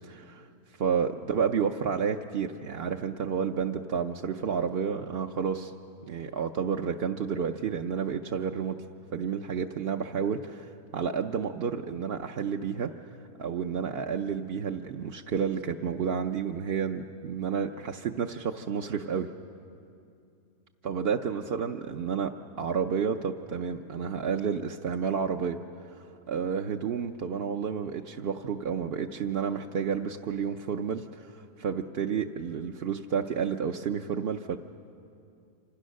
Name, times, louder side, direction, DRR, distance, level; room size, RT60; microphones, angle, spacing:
voice 1, 0.0-0.5 0.8-5.7 6.1-8.8 9.1-12.9 13.4-19.3 20.8-25.6 26.3-34.6, right 6 dB, 55° right, 3 dB, 0.7 m, -30 dB
27.0 x 26.5 x 6.5 m, 2.5 s
omnidirectional pair, 1.8 m